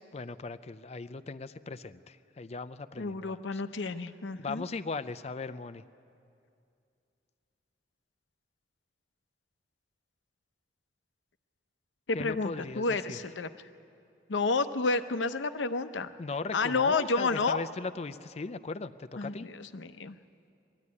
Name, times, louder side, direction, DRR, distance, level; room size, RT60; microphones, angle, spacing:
voice 1, 0.1-3.6 4.4-5.8 12.1-13.2 16.2-19.5, left 3 dB, 35° left, 12 dB, 0.4 m, -38 dB
voice 2, 3.0-4.6 12.1-13.5 14.3-16.1 16.5-17.6 19.2-20.2, left 3 dB, 90° left, 10 dB, 0.7 m, -30 dB
21.0 x 14.0 x 9.6 m, 2.5 s
head